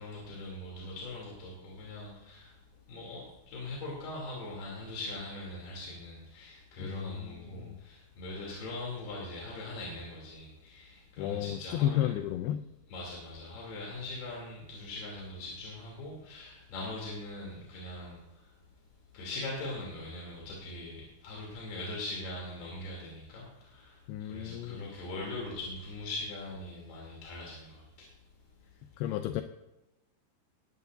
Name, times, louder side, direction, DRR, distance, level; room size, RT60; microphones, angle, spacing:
voice 1, 0.0-2.6 2.9-12.1 12.9-18.5 19.1-28.1, left 2 dB, 65° left, -4 dB, 5.1 m, -41 dB
voice 2, 6.8-7.3 7.6-7.8 11.2-12.6 24.1-24.9 29.0-29.4, left 12 dB, 80° left, 7 dB, 2.4 m, -32 dB
18.5 x 15.0 x 2.7 m, 0.97 s
omnidirectional pair, 5.0 m